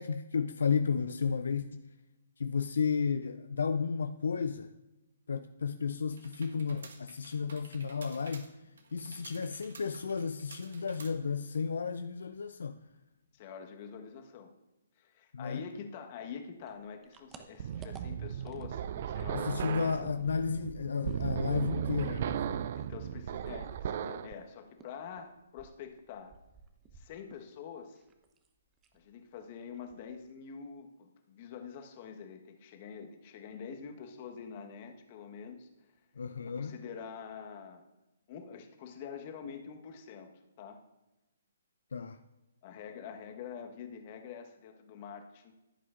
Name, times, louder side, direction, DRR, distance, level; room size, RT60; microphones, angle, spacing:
voice 1, 0.0-1.8 2.4-4.7 5.3-8.5 8.9-12.8 15.3-15.6 19.3-22.6 36.2-36.8 41.9-42.2, left 5 dB, 70° left, 10 dB, 0.4 m, -33 dB
sound 1, 6.1-11.6, right 4 dB, 65° right, 1.4 m, -53 dB
voice 2, 13.3-14.5 15.0-20.1 22.7-26.3 26.9-28.0 28.9-35.7 36.4-37.8 38.3-40.3 40.6-40.8 42.6-45.5, left 6 dB, 40° left, 5 dB, 1.3 m, -46 dB
sound 2, 16.6-19.7 19.9-24.4 24.8-27.5 27.8-28.5 28.8-29.0 29.4-29.5 29.7-30.3, right 4 dB, 20° right, 0.9 m, -54 dB
sound 3, 17.6-24.3, right 9 dB, 50° right, 0.4 m, -36 dB
15.0 x 8.3 x 2.5 m, 0.98 s
figure-of-eight pair, 135°, 0 cm